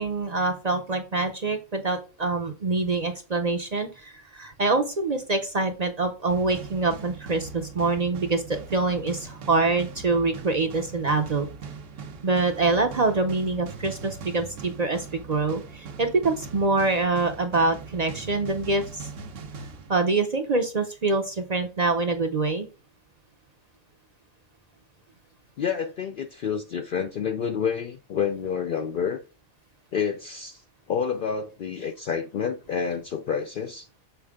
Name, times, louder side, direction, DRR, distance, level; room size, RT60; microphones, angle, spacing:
voice 1, 0.0-11.5 12.2-19.1 19.9-22.7, right 3 dB, 40° right, 0.6 m, -25 dB
sound 1, 6.3-20.5, right 5 dB, 75° right, 1.2 m, -41 dB
voice 2, 25.6-29.2 29.9-33.9, left 7 dB, 65° left, 0.5 m, -29 dB
7.0 x 4.3 x 3.5 m
omnidirectional pair, 1.3 m